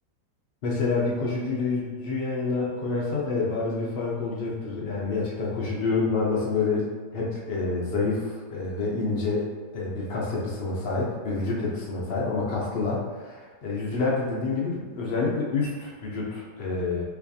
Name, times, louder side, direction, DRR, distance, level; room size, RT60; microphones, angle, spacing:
voice 1, 0.6-6.9 7.1-9.4 9.7-17.0, left 3 dB, 90° left, -4 dB, 0.5 m, -28 dB
4.4 x 2.4 x 2.7 m, 1.4 s
omnidirectional pair, 1.8 m